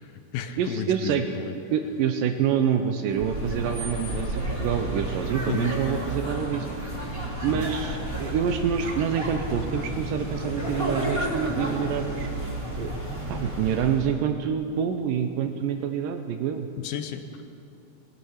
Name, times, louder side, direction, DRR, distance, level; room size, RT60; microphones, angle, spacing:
voice 1, 0.0-1.5 5.5-5.8 7.5-7.7 16.8-17.2, left 9 dB, 80° left, 8 dB, 2.5 m, -33 dB
voice 2, 0.6-1.3 1.7-6.7 7.4-12.3 12.8-12.9 13.3-16.7, right 8 dB, 80° right, 7 dB, 2.1 m, -27 dB
sound 1, 3.1-14.2, right 1 dB, 5° right, 2.5 m, -31 dB
20.5 x 9.4 x 5.7 m, 2.7 s
omnidirectional pair, 4.3 m